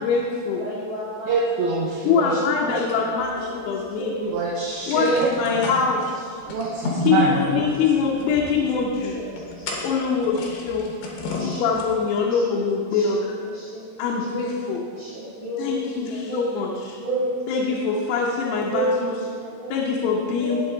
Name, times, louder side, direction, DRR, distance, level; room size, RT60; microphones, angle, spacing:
voice 1, 0.0-0.6 2.1-4.1 4.9-6.4 7.1-9.2 9.8-10.9 11.4-13.3 14.0-14.8 15.6-17.0 17.5-19.1 19.7-20.6, left 5 dB, 85° left, -3 dB, 3.7 m, -24 dB
voice 2, 0.6-1.3 2.3-3.5 4.0-4.2 5.5-5.6 5.9-6.8 7.1-7.3 7.6-7.7 8.7-10.1 11.3-11.7 12.2-12.4 12.8-14.5 14.9-16.5 17.0-17.8 18.7-19.0 19.3-19.7 20.4-20.6, right 1 dB, 35° right, -13 dB, 2.3 m, -32 dB
voice 3, 1.3-2.4 2.7-2.8 4.2-5.3 6.5-7.6, right 4 dB, 75° right, -3 dB, 2.9 m, -24 dB
sound 1, 2.9-4.1 4.3-4.4 4.7-12.2, left 3 dB, 65° left, 2.8 m, -35 dB
19.0 x 6.5 x 3.9 m, 2.2 s
omnidirectional pair, 6.0 m